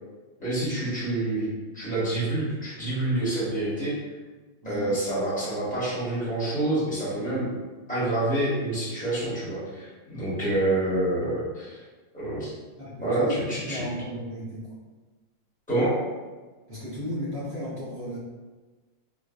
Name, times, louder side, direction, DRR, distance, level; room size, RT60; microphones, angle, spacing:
voice 1, 0.4-1.5 1.7-3.9 4.6-7.5 7.9-11.8 12.1-12.5 13.0-13.8 15.7-15.9, right 1 dB, 5° left, -10 dB, 0.9 m, -27 dB
voice 2, 12.8-14.8 16.7-18.2, left 1 dB, 50° right, -10 dB, 0.7 m, -35 dB
3.7 x 2.5 x 2.4 m, 1.3 s
omnidirectional pair, 2.2 m